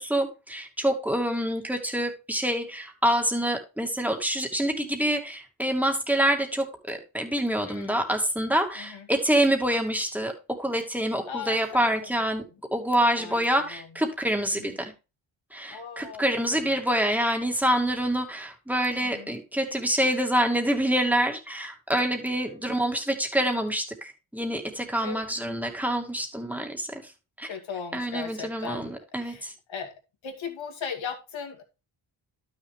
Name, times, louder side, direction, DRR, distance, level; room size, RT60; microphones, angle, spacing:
voice 1, 0.0-12.4 12.7-14.9 15.5-27.0 27.4-27.5 27.9-29.5, right 1 dB, 5° right, 2.4 m, -26 dB
voice 2, 7.6-8.0 8.7-9.1 11.3-11.9 13.2-13.9 14.5-14.8 15.7-16.2 16.5-16.8 19.0-19.3 22.4-22.6 25.0-25.2 27.5-29.9 30.2-31.6, left 6 dB, 65° left, 2.6 m, -38 dB
12.0 x 6.6 x 3.2 m
cardioid pair, 95°, 50 cm